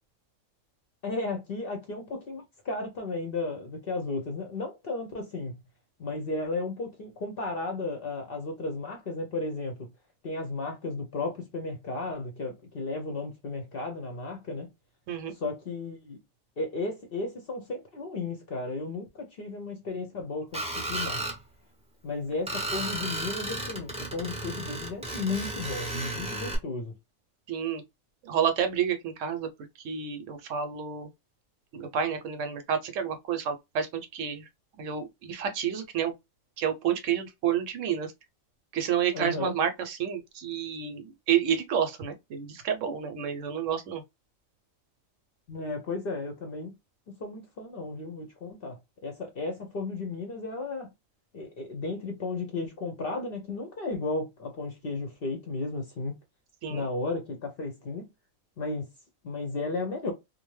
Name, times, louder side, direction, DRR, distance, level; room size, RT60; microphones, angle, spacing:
voice 1, 1.0-5.6 6.0-9.9 10.2-14.7 15.3-16.2 16.6-21.2 22.0-26.9 39.1-39.5 45.5-46.7 47.1-50.9 51.3-56.1 56.7-58.1 58.6-58.9 59.2-60.1, left 3 dB, 55° left, 0.7 m, -34 dB
Screech, 20.5-21.4 22.5-26.6, right 2 dB, 10° right, 0.4 m, -34 dB
voice 2, 27.5-27.8 28.2-29.5 29.8-31.1 31.7-34.5 34.8-36.1 36.6-38.1 38.7-44.0 56.6-56.8, right 8 dB, 70° right, 0.9 m, -29 dB
2.5 x 2.1 x 3.0 m
omnidirectional pair, 1.4 m